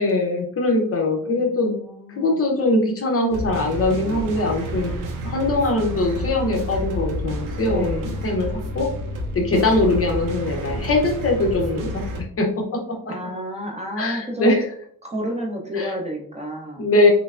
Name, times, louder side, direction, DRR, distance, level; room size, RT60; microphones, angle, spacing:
voice 1, 0.0-1.8 2.2-4.9 5.2-8.5 8.7-8.9 9.3-12.0 12.4-12.5 13.1-13.2 14.0-14.6 15.8-15.9 16.8-17.1, left 2 dB, 40° left, 1 dB, 0.6 m, -21 dB
voice 2, 1.2-2.4 7.6-8.2 9.5-9.8 13.1-14.6 15.0-16.9, equal, 15° right, -1 dB, 0.6 m, -31 dB
sound 1, 3.3-12.2, equal, 60° right, 0.6 m, -29 dB
3.2 x 3.1 x 2.4 m, 0.62 s
wide cardioid pair, 180°, 38 cm